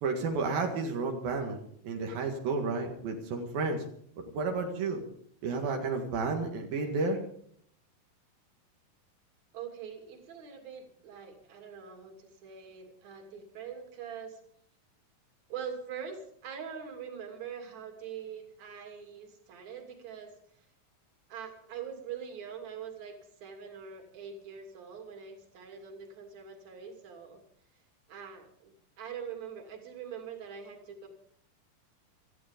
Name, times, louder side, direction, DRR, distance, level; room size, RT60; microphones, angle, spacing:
voice 1, 0.0-1.6 1.8-3.8 4.3-5.0 5.4-7.2, right 4 dB, 80° right, 2 dB, 3.7 m, -31 dB
voice 2, 9.5-14.4 15.5-20.3 21.3-23.2 23.4-27.4 28.1-31.1, right 7 dB, 55° right, 4 dB, 3.9 m, -43 dB
19.5 x 14.5 x 5.2 m, 0.64 s
omnidirectional pair, 4.1 m